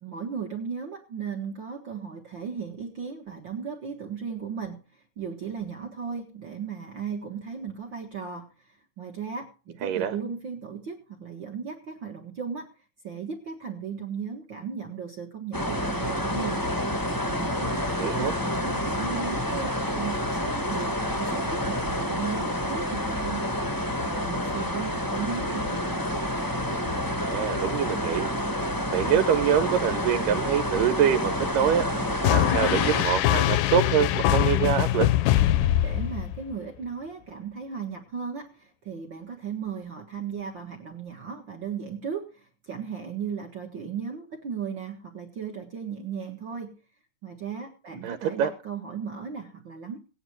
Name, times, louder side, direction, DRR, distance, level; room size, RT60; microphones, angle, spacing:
voice 1, 0.0-12.7 13.0-16.6 17.2-17.8 18.0-25.9 35.6-46.7 47.2-50.0, right 6 dB, 45° right, 2 dB, 1.6 m, -36 dB
voice 2, 9.8-10.1 18.0-18.3 27.3-35.1 48.0-48.5, right 9 dB, 85° right, 9 dB, 2.5 m, -25 dB
sound 1, 15.5-33.0, left 1 dB, 20° left, 0.5 m, -28 dB
sound 2, 32.2-36.5, left 13 dB, 85° left, 2.4 m, -23 dB
17.0 x 9.5 x 4.6 m, 0.36 s
omnidirectional pair, 3.9 m